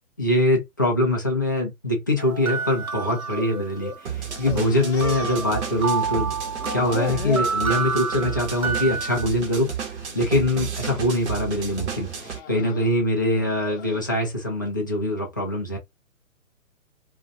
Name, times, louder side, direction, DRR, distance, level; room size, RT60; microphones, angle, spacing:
voice 1, 0.2-6.4 6.7-9.7 10.1-15.8, left 1 dB, 15° left, 0.3 m, -23 dB
sound 1, 2.2-4.0 5.0-9.3, right 5 dB, 90° right, 0.9 m, -29 dB
sound 2, 2.9-4.0 4.3-6.2 6.4-7.6 8.1-8.4 8.8-9.0 9.8-10.2 10.7-11.1 11.9-14.1, left 6 dB, 50° left, 0.7 m, -37 dB
sound 3, 4.1-12.4, right 7 dB, 55° right, 1.0 m, -32 dB
2.4 x 2.4 x 3.4 m
figure-of-eight pair, 130°, 41 cm